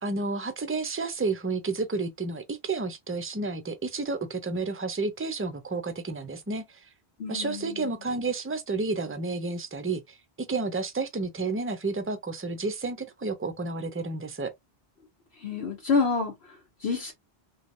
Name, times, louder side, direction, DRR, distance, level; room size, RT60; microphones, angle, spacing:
voice 1, 0.0-6.9 7.3-10.2 10.5-14.5, right 3 dB, 20° right, 0.3 m, -31 dB
voice 2, 7.2-7.8 15.4-16.3 16.8-17.1, left 4 dB, 80° left, 1.2 m, -27 dB
3.1 x 3.1 x 2.5 m
omnidirectional pair, 1.0 m